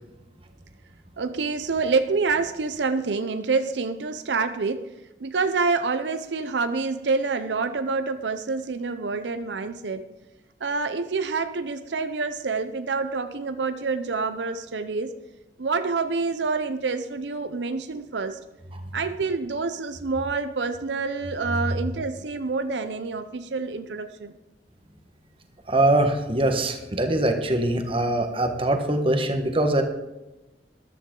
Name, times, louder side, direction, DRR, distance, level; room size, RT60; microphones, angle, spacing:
voice 1, 1.2-4.9 5.2-10.1 10.6-15.1 15.6-18.4 18.9-24.3, right 4 dB, 90° right, 10 dB, 0.7 m, -27 dB
voice 2, 25.7-29.8, right 1 dB, 30° right, 5 dB, 1.3 m, -22 dB
14.0 x 11.5 x 3.9 m, 1.0 s
head